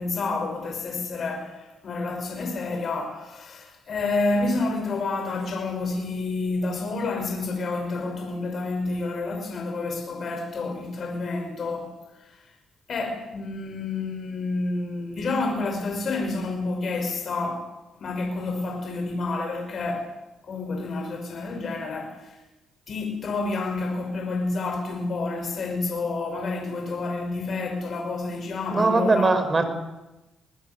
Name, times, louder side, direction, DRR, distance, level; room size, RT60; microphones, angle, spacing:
voice 1, 0.0-12.4 12.9-17.7 18.0-20.1 20.4-22.4 22.9-29.3, left 3 dB, 50° left, 5.4 m, -29 dB
voice 2, 28.7-29.6, right 3 dB, 30° right, 4.8 m, -20 dB
24.0 x 20.5 x 6.9 m
cardioid pair, 90°, 0 cm